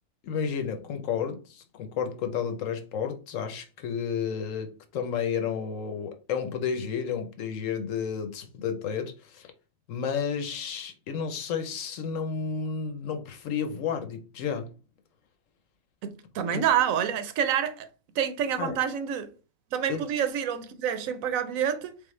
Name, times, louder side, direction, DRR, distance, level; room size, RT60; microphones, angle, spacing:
voice 1, 0.2-9.5 9.9-14.7 16.5-16.6 18.6-18.8 19.9-20.0, left 7 dB, 75° left, 1.1 m, -31 dB
voice 2, 16.0-17.9 18.2-19.3 19.7-21.9, right 9 dB, 80° right, 1.0 m, -27 dB
3.8 x 3.5 x 3.1 m
omnidirectional pair, 1.4 m